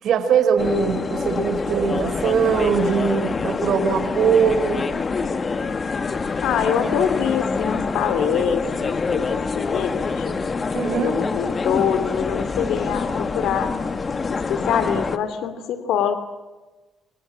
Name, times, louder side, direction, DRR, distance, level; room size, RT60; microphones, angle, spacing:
voice 1, 0.0-4.8 10.7-11.2, right 6 dB, 70° right, 8 dB, 5.2 m, -21 dB
sound 1, 0.6-15.2, left 4 dB, 35° left, 2.0 m, -26 dB
voice 2, 6.4-10.3 11.0-13.7 14.3-16.1, left 8 dB, 85° left, 11 dB, 2.8 m, -24 dB
28.5 x 27.0 x 7.5 m, 1.2 s
cardioid pair, 90°, 0 cm